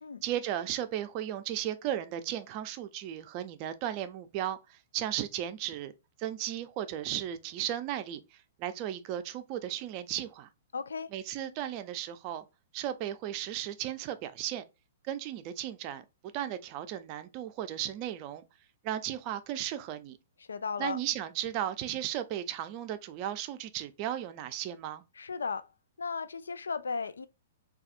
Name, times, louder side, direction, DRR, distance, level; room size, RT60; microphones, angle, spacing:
voice 1, 0.2-5.9 6.2-10.5 11.1-12.4 12.7-14.6 15.1-16.0 16.3-18.4 18.8-20.2 20.8-25.0, right 11 dB, 40° right, 0.4 m, -35 dB
voice 2, 10.7-11.1 20.5-21.0 25.2-25.7 26.0-27.3, left 5 dB, 85° left, 0.3 m, -35 dB
4.1 x 2.3 x 2.5 m
hypercardioid pair, 120°, 0 cm